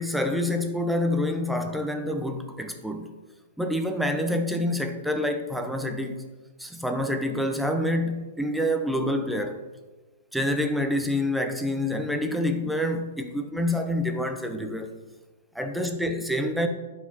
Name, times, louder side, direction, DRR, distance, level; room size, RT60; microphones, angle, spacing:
voice 1, 0.0-3.1 3.6-6.2 6.6-9.6 10.3-14.9 15.5-16.7, left 1 dB, ahead, 0.9 m, -27 dB
11.0 x 4.9 x 5.4 m
hypercardioid pair, 135°, 0 cm